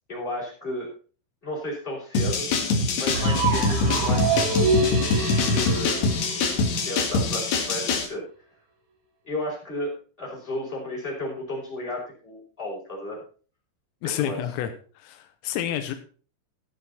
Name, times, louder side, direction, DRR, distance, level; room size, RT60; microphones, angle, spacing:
voice 1, 0.1-0.9 1.4-2.5 3.0-4.3 5.5-6.0 6.8-8.2 9.2-13.2 14.0-14.4, left 1 dB, 10° left, -4 dB, 4.9 m, -33 dB
sound 1, 2.1-8.1, left 3 dB, 65° left, 1.8 m, -24 dB
sound 2, 3.1-7.1, right 3 dB, 45° right, 3.1 m, -26 dB
voice 2, 14.0-14.7 15.0-16.0, left 11 dB, 85° left, 8 dB, 3.5 m, -29 dB
14.5 x 7.7 x 4.2 m, 0.40 s
omnidirectional pair, 5.9 m